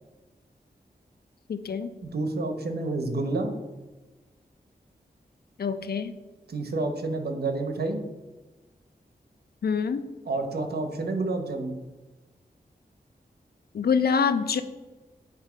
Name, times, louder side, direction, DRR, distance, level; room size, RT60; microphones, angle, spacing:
voice 1, 1.5-1.9 5.6-6.1 9.6-10.1 13.7-14.6, left 6 dB, 70° left, 11 dB, 0.5 m, -25 dB
voice 2, 2.0-3.5 6.5-8.0 10.3-11.8, right 2 dB, 75° right, 6 dB, 0.9 m, -29 dB
8.2 x 3.1 x 5.0 m, 1.2 s
wide cardioid pair, 70°, 17 cm